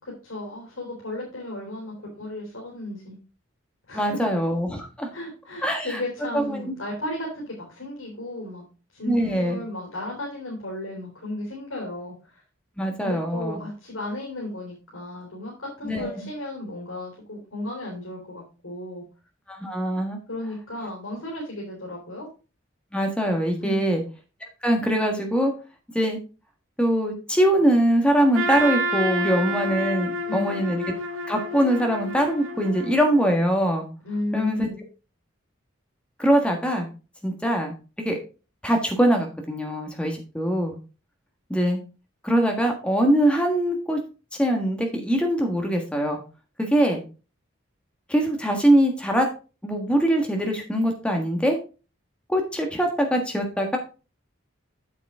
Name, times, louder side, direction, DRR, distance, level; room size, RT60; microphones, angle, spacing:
voice 1, 0.0-3.2 3.9-4.3 5.1-8.6 8.9-12.4 13.0-19.0 20.3-22.3 23.6-24.0 30.2-30.6 34.0-34.8, left 1 dB, 85° left, -3 dB, 3.5 m, -34 dB
voice 2, 3.9-5.1 5.6-6.0 6.3-6.7 9.0-9.6 12.8-13.6 15.8-16.3 19.5-20.2 22.9-24.0 24.6-25.5 25.9-26.2 26.8-30.8 31.3-33.9 34.3-34.7 36.2-36.9 37.2-38.2 38.6-40.8 41.5-41.8 42.2-44.0 44.4-46.2 46.6-47.0 48.1-49.3 49.6-51.6 52.3-53.8, equal, 5° left, 2 dB, 1.5 m, -22 dB
Trumpet, 28.3-33.4, right 1 dB, 85° right, 1.4 m, -29 dB
8.3 x 6.9 x 3.7 m, 0.33 s
head